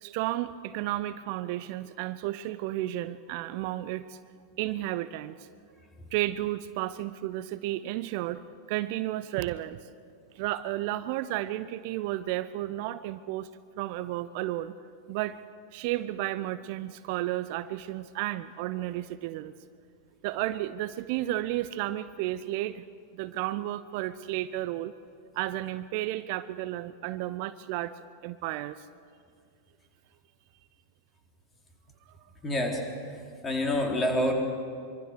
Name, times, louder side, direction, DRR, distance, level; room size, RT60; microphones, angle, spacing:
voice 1, 0.0-4.2 4.6-5.5 6.1-8.4 8.7-9.8 10.4-13.5 13.8-14.7 15.1-15.4 15.7-19.5 20.2-22.8 23.1-24.9 25.3-28.8, right 15 dB, 45° right, 15 dB, 0.6 m, -32 dB
voice 2, 32.4-32.8 33.4-34.3, left 1 dB, 20° left, 2 dB, 4.1 m, -26 dB
24.5 x 24.5 x 6.6 m, 2.3 s
figure-of-eight pair, 90°, 0 cm